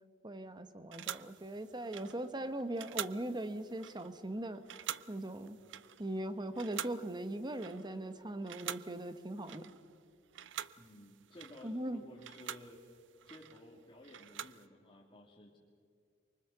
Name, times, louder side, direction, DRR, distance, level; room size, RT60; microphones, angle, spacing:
voice 1, 0.2-4.6 5.1-5.6 6.0-9.7 11.6-12.0, right 1 dB, 25° right, 10 dB, 1.1 m, -40 dB
sound 1, 0.9-8.1 8.4-10.0 10.3-14.7, right 10 dB, 70° right, 0.5 m, -47 dB
voice 2, 10.8-13.0 13.3-15.6, left 1 dB, 25° left, -5 dB, 2.4 m, -55 dB
24.5 x 24.0 x 6.9 m, 2.2 s
head